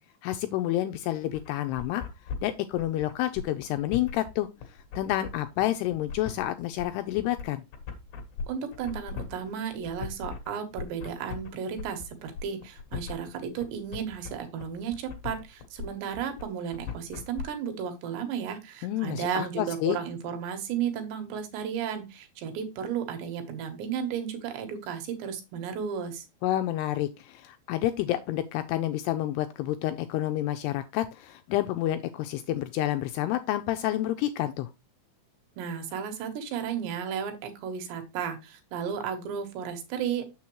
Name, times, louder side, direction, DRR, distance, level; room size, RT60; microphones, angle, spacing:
voice 1, 0.2-2.0 2.4-7.6 18.8-20.0 26.4-34.7, left 13 dB, 85° left, 2.4 m, -29 dB
sound 1, 1.3-17.4, left 5 dB, 65° left, 2.4 m, -39 dB
voice 2, 8.5-26.3 35.6-40.3, right 7 dB, 75° right, 3.4 m, -34 dB
7.2 x 6.8 x 3.0 m
omnidirectional pair, 5.2 m